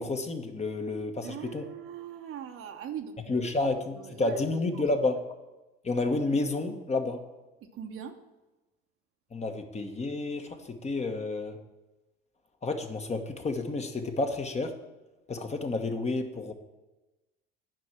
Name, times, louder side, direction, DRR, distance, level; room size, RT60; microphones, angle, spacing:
voice 1, 0.0-1.6 3.3-5.2 5.8-7.2 9.3-11.6 12.6-14.8 15.3-16.5, left 2 dB, 20° left, 5 dB, 1.3 m, -30 dB
voice 2, 1.2-3.4 3.7-4.4 4.7-4.8 7.6-8.2, right 9 dB, 50° right, 5 dB, 1.2 m, -41 dB
10.5 x 5.3 x 7.4 m, 1.1 s
hypercardioid pair, 70°, 29 cm